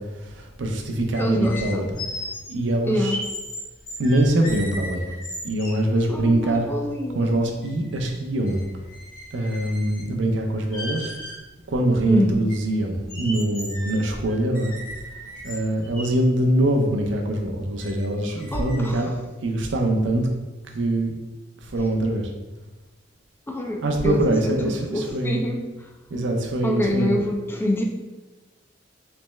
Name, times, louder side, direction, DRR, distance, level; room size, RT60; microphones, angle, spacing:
voice 1, 0.0-1.8 2.5-3.1 4.0-5.0 5.4-6.7 7.1-8.6 9.3-11.1 11.7-14.7 15.4-19.1 19.4-20.3 20.7-21.2 21.6-22.3 23.8-25.4 26.1-27.2, right 1 dB, 75° right, 3 dB, 0.6 m, -23 dB
sound 1, 1.1-5.9 6.4-6.5 6.8-8.2 8.4-10.1 10.6-11.4 11.9-12.0 12.5-16.1 16.7-16.9 17.3-17.5 17.8-18.9, left 1 dB, 50° left, 1.0 m, -37 dB
voice 2, 1.2-1.9 2.9-3.2 6.1-7.4 12.1-12.4 18.5-19.1 23.5-25.9 26.6-27.8, left 1 dB, 10° left, 2 dB, 0.3 m, -26 dB
3.4 x 3.1 x 3.1 m, 1.1 s
head